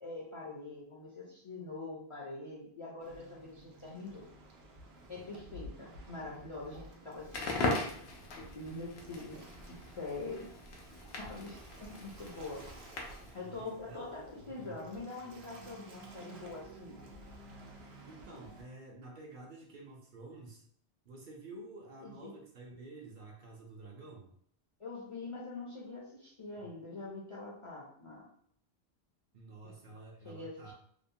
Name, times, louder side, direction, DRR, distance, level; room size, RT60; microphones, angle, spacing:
voice 1, 0.0-4.2 5.1-7.9 8.5-10.5 11.2-12.6 13.3-17.0 22.0-22.3 24.8-28.2 29.8-30.0 30.2-30.7, left 3 dB, 40° left, -5 dB, 0.5 m, -44 dB
Waves surf, 3.0-18.6, right 1 dB, 85° right, 0.9 m, -53 dB
Crackle, 7.2-13.4, left 2 dB, 85° left, 0.9 m, -39 dB
voice 2, 13.3-14.8 18.1-20.7 21.1-24.3 26.6-26.7 29.3-30.7, right 3 dB, 60° right, -1 dB, 0.7 m, -50 dB
2.9 x 2.1 x 2.6 m, 0.63 s
omnidirectional pair, 1.0 m